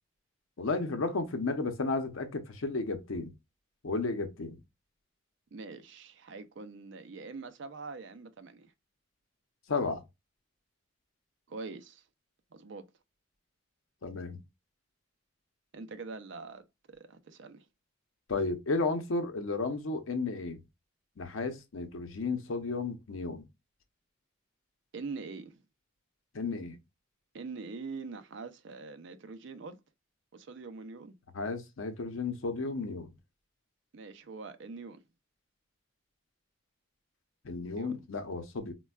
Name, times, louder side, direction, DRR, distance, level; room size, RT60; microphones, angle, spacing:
voice 1, 0.6-3.3 3.8-4.6 9.7-10.0 14.0-14.4 18.3-20.6 21.2-23.5 26.3-26.8 31.3-33.1 37.4-38.7, left 3 dB, 90° left, 0.7 m, -33 dB
voice 2, 5.5-8.7 11.5-12.0 12.5-12.8 15.7-17.6 24.9-25.6 27.3-29.8 30.3-31.1 33.9-35.0 37.7-38.0, right 4 dB, 65° right, 0.5 m, -44 dB
4.1 x 2.2 x 2.3 m
head